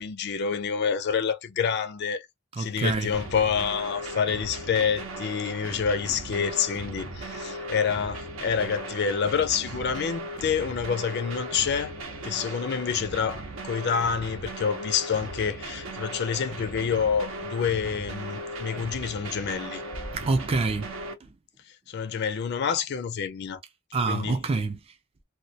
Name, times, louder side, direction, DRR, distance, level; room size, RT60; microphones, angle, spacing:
voice 1, 0.0-2.3 2.6-11.9 12.2-19.8 21.9-23.6 24.1-24.4, left 6 dB, 55° left, 0.4 m, -28 dB
voice 2, 2.5-3.1 20.1-20.9 21.2-21.3 23.9-24.8, right 3 dB, 30° right, 0.3 m, -26 dB
sound 1, 3.1-21.1, right 1 dB, 80° right, 0.7 m, -37 dB
2.2 x 2.1 x 2.7 m
head